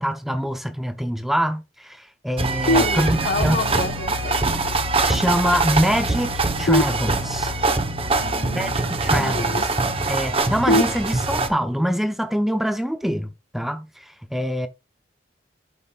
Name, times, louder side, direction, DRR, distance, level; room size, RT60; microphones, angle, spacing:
voice 1, 0.0-3.6 4.8-7.5 8.5-9.6 10.1-13.3 13.5-14.7, equal, ahead, 0.5 m, -25 dB
sound 1, 2.4-11.5, right 3 dB, 30° right, 1.0 m, -23 dB
sound 2, 2.7-3.6 6.7-7.7 10.7-11.7, left 1 dB, 90° left, 0.9 m, -24 dB
voice 2, 2.8-4.4 8.2-9.7, left 3 dB, 60° left, 1.2 m, -30 dB
12.0 x 5.5 x 2.4 m
head